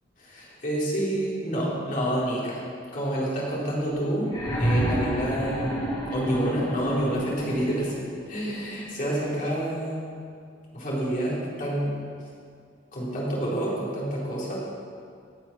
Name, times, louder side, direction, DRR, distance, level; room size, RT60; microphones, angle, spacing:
voice 1, 0.2-2.6 2.9-4.3 4.6-5.7 6.1-10.2 10.7-12.0 12.9-14.6, right 1 dB, 45° left, -6 dB, 4.1 m, -28 dB
sound 1, 4.2-8.1 9.3-9.4, equal, 25° left, 3.3 m, -29 dB
17.5 x 7.6 x 6.1 m, 2.2 s
head